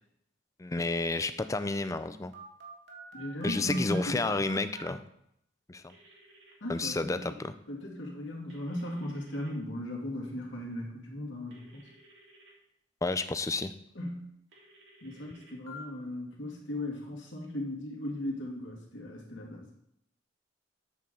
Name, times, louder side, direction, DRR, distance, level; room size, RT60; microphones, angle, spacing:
voice 1, 0.6-2.3 3.4-5.0 5.7-5.9 6.7-7.6 13.0-13.7, left 3 dB, 15° left, 11 dB, 0.4 m, -31 dB
Telephone, 2.3-4.9 5.9-6.5 8.5-9.5 11.5-12.5 14.5-15.8, right 3 dB, 65° right, 2.0 m, -50 dB
voice 2, 3.1-4.2 6.6-7.3 7.7-11.8 14.0-14.3 15.0-19.6, left 1 dB, 85° left, -1 dB, 2.2 m, -37 dB
8.5 x 3.8 x 6.7 m, 0.75 s
head